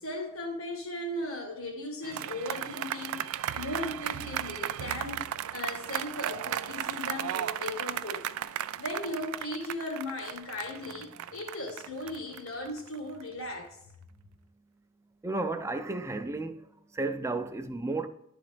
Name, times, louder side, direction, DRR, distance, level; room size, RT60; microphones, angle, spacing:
voice 1, 0.0-3.2 3.5-8.2 8.8-13.8, left 1 dB, 70° left, 1.4 m, -37 dB
sound 1, 2.0-13.4, right 10 dB, 80° right, 0.3 m, -35 dB
voice 2, 3.4-3.7 15.2-16.6 16.9-18.1, right 2 dB, 15° right, 0.4 m, -33 dB
10.5 x 3.9 x 3.4 m
head